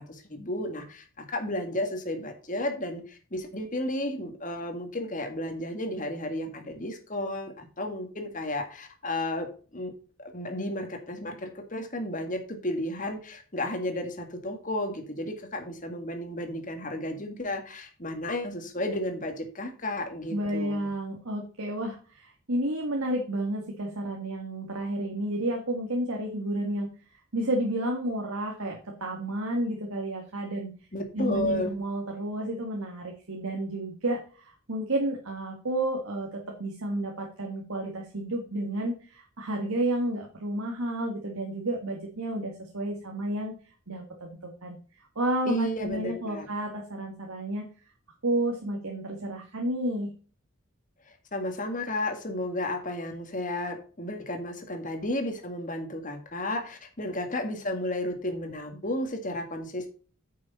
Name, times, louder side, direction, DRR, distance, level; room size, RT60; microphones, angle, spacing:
voice 1, 0.0-9.9 10.2-20.9 30.9-31.7 45.5-46.5 51.1-59.9, left 1 dB, 35° left, 5 dB, 2.0 m, -33 dB
voice 2, 20.3-26.9 27.3-30.7 31.1-43.5 43.9-44.8 45.2-47.6 48.2-50.1, right 1 dB, 80° right, 1 dB, 1.8 m, -31 dB
9.4 x 6.5 x 4.2 m, 0.39 s
head